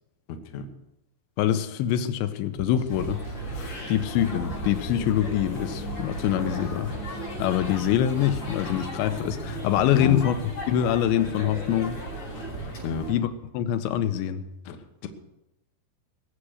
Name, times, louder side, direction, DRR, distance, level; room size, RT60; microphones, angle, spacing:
voice 1, 0.3-0.7 9.9-10.2 12.8-13.1 14.7-15.1, left 6 dB, 65° left, 1.7 m, -32 dB
voice 2, 1.4-3.2 3.5-7.0 7.4-10.4 10.7-12.0 13.1-14.4, left 11 dB, 85° left, 3.0 m, -25 dB
sound 1, 2.5-10.1, right 2 dB, 80° right, 8.0 m, -44 dB
sound 2, 2.9-13.1, right 1 dB, 40° left, 7.3 m, -35 dB
21.0 x 7.5 x 6.5 m
omnidirectional pair, 5.0 m